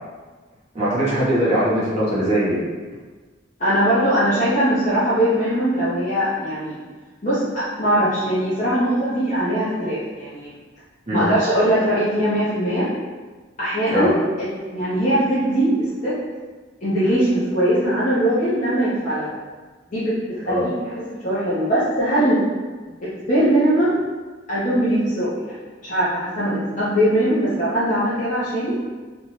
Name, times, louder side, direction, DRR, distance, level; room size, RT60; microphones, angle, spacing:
voice 1, 0.7-2.6 11.1-11.4 11.8-11.9 13.9-14.1 20.4-20.7, right 1 dB, 35° right, -9 dB, 0.9 m, -21 dB
voice 2, 3.6-6.8 7.2-10.5 11.1-12.9 13.6-14.1 14.4-16.2 16.8-19.3 19.9-20.7 21.2-22.4 23.0-24.0 24.5-25.6 25.8-28.8, right 1 dB, 40° left, -12 dB, 0.7 m, -21 dB
2.6 x 2.2 x 3.0 m, 1.4 s
head